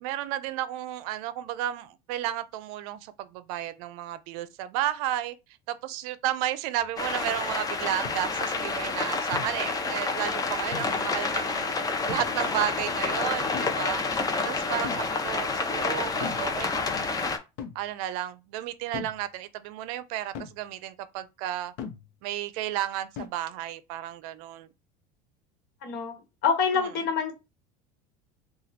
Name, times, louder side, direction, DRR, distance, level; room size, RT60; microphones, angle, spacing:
voice 1, 0.0-5.4 5.7-11.8 12.1-14.0 14.4-17.1 17.7-21.7 22.2-24.7 26.7-26.9, right 12 dB, 70° right, 0.5 m, -33 dB
sound 1, 6.8-6.9 8.1-8.3 9.3-9.7 10.7-11.1 12.1-12.4 13.5-13.9 14.8-15.2 16.2-16.5 17.6-17.9 18.9-19.2 20.4-20.6 21.8-22.1 23.2-23.3, left 7 dB, 70° left, 0.8 m, -39 dB
sound 2, 7.0-17.4, left 4 dB, 20° left, 0.6 m, -29 dB
voice 2, 25.8-26.2 26.4-27.3, left 6 dB, 50° left, 1.3 m, -26 dB
3.0 x 2.4 x 4.1 m
supercardioid pair, 105°, 20 cm